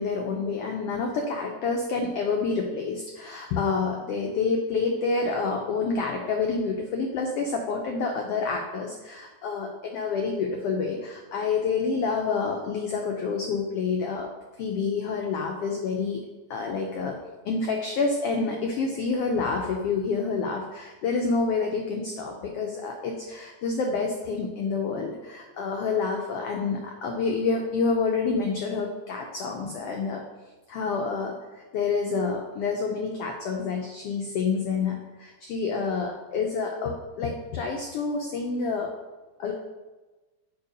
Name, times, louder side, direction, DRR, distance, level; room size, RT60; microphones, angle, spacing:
voice 1, 0.0-14.3 14.6-17.2 17.4-30.2 30.7-38.9 39.4-39.5, left 4 dB, 85° left, 2 dB, 1.3 m, -28 dB
5.4 x 4.6 x 5.1 m, 1.2 s
omnidirectional pair, 3.4 m